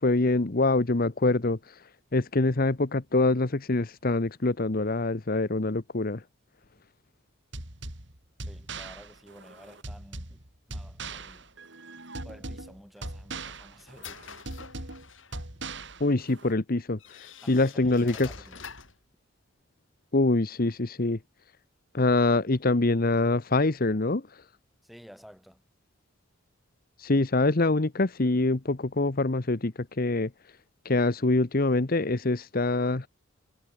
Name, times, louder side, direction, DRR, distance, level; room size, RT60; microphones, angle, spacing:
voice 1, 0.0-6.2 16.0-18.3 20.1-21.2 21.9-24.5 27.0-30.6 30.8-33.1, left 2 dB, 45° left, 1.0 m, -25 dB
sound 1, 7.5-16.5, right 2 dB, 60° right, 6.1 m, -40 dB
voice 2, 8.5-11.5 12.2-14.4 14.7-15.0 17.4-18.6 24.8-25.6, equal, ahead, 7.6 m, -52 dB
sound 2, 13.0-15.4 16.3-16.4 17.0-19.0, left 6 dB, 70° left, 4.2 m, -46 dB
head